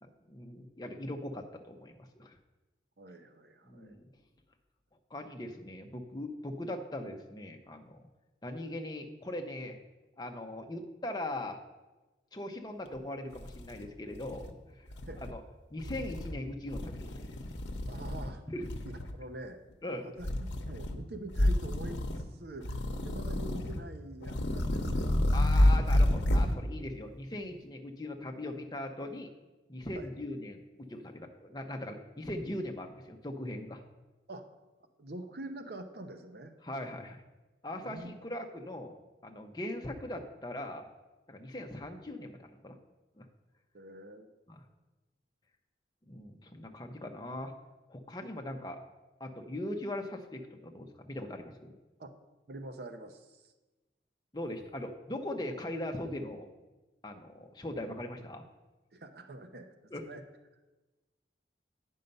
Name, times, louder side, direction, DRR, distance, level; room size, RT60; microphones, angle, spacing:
voice 1, 0.0-2.4 3.6-4.0 5.1-8.0 8.4-9.8 10.2-11.6 12.3-14.5 14.8-14.9 15.3-15.4 15.7-17.1 18.5-18.7 19.8-20.1 25.3-29.3 29.7-33.8 36.6-37.2 37.6-40.9 41.3-42.8 43.2-43.3 44.5-44.6 46.1-47.5 47.9-48.8 49.2-51.7 54.3-56.5 57.0-58.4 59.9-60.0, left 1 dB, 20° left, 3 dB, 0.8 m, -40 dB
voice 2, 3.0-4.0 15.1-15.3 17.9-18.4 18.8-19.6 20.0-22.0 22.3-25.4 29.9-30.1 34.3-34.5 35.0-36.5 37.8-38.2 43.7-44.3 48.2-48.4 52.0-52.1 52.5-53.5 58.9-59.8 60.1-60.2, right 1 dB, 60° right, 7 dB, 0.7 m, -45 dB
sound 1, 12.9-13.0 13.4-14.5 14.9-15.3 15.8-16.4 16.7-18.3 18.6-19.1 20.2-21.0 21.3-22.3 22.6-23.8 24.2-26.6, left 1 dB, 80° left, 0.8 m, -29 dB
9.1 x 5.5 x 5.4 m, 1.1 s
head